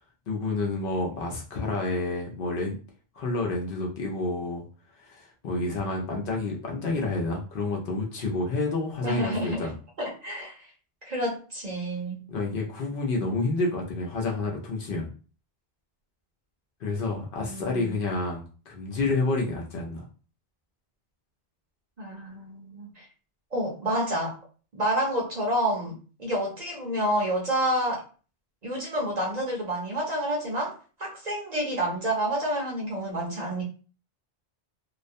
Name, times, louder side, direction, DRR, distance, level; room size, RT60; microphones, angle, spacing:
voice 1, 0.3-2.8 3.1-4.6 5.0-9.7 12.3-15.1 16.8-20.0, left 3 dB, 60° left, -1 dB, 0.7 m, -29 dB
voice 2, 9.0-9.7 10.0-10.6 11.0-12.2 17.4-17.9 22.0-23.1 23.5-24.4 24.7-28.0 28.6-30.7 31.0-33.6, right 1 dB, 45° right, -2 dB, 0.7 m, -29 dB
2.3 x 2.1 x 2.5 m, 0.37 s
omnidirectional pair, 1.1 m